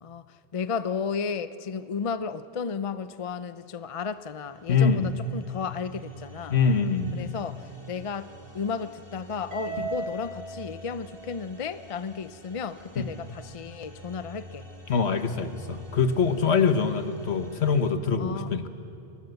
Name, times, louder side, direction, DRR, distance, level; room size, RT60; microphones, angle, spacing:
voice 1, 0.0-6.6 7.1-14.7 18.2-18.7, left 6 dB, 40° left, 12 dB, 0.5 m, -33 dB
sound 1, 3.6-17.9, equal, 20° right, 1.6 m, -48 dB
voice 2, 4.7-5.2 6.5-7.4 9.8-9.9 13.0-13.1 14.9-18.7, left 5 dB, 65° left, 9 dB, 1.4 m, -24 dB
Harp, 9.5-12.0, right 3 dB, 75° right, 6.7 m, -37 dB
25.5 x 20.5 x 8.0 m, 2.7 s
omnidirectional pair, 1.2 m